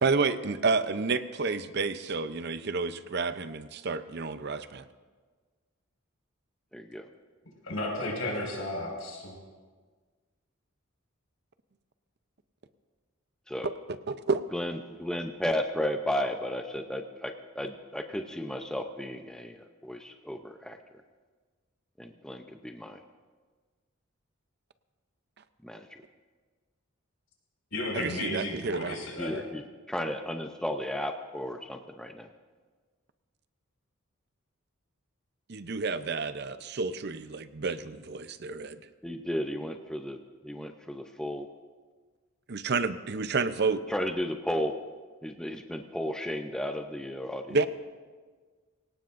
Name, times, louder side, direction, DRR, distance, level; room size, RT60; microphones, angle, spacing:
voice 1, 0.0-4.8 14.1-14.4 27.9-29.0 35.5-38.8 42.5-43.8 47.5-47.7, right 4 dB, 55° right, 11 dB, 0.6 m, -30 dB
voice 2, 6.7-7.1 13.5-13.7 14.5-19.5 19.8-20.8 22.0-23.0 25.6-25.8 29.2-29.6 29.9-32.3 39.0-40.2 40.4-41.5 43.9-44.7 45.2-47.6, left 1 dB, 5° left, 5 dB, 0.6 m, -34 dB
voice 3, 7.6-9.4 27.7-29.4, left 1 dB, 80° left, -1 dB, 5.4 m, -33 dB
24.0 x 18.0 x 2.6 m, 1.4 s
head